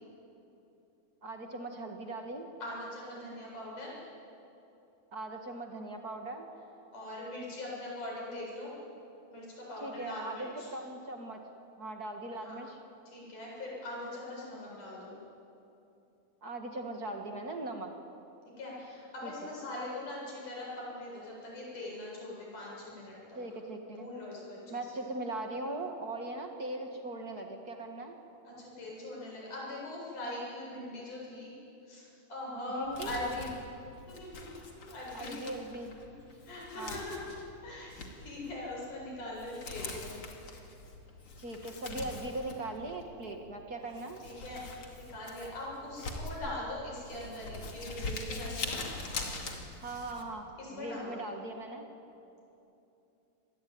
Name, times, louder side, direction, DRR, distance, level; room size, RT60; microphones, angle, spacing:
voice 1, 1.2-2.5 5.1-6.5 9.8-11.4 11.8-12.8 16.4-17.9 19.2-19.5 23.3-24.1 24.7-28.2 32.7-33.2 35.1-35.9 36.8-37.0 41.4-44.2 49.8-51.9, right 2 dB, 40° right, 3 dB, 1.4 m, -40 dB
voice 2, 2.6-3.9 6.9-8.7 9.3-10.7 12.4-12.5 13.1-15.2 18.6-23.4 23.9-24.8 28.5-31.5 31.9-33.5 34.1-35.5 36.0-36.2 36.5-37.3 37.6-40.2 44.2-48.8 50.6-51.2, left 1 dB, 55° left, -4 dB, 9.5 m, -41 dB
Crumpling crinkling, 32.8-50.2, left 3 dB, 40° left, 3.0 m, -43 dB
26.5 x 20.0 x 9.5 m, 2.8 s
omnidirectional pair, 4.2 m